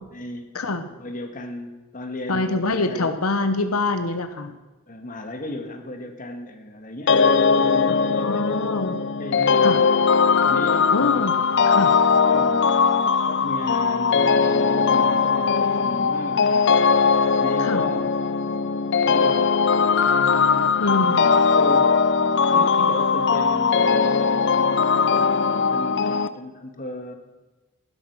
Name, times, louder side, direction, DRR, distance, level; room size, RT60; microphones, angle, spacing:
voice 1, 0.1-0.6 1.0-3.1 4.9-7.1 7.5-8.6 9.2-10.0 10.5-11.5 12.1-12.7 13.3-16.9 17.4-18.2 19.0-21.9 22.5-27.1, left 1 dB, 40° left, 5 dB, 1.6 m, -35 dB
voice 2, 2.3-4.5 7.9-9.0 9.6-9.8 10.9-11.3 11.7-11.9 17.6-17.8 20.8-21.3, left 3 dB, 90° left, 8 dB, 1.0 m, -25 dB
sound 1, 7.1-26.3, left 5 dB, 55° left, 0.6 m, -19 dB
12.5 x 11.5 x 6.1 m, 1.2 s
head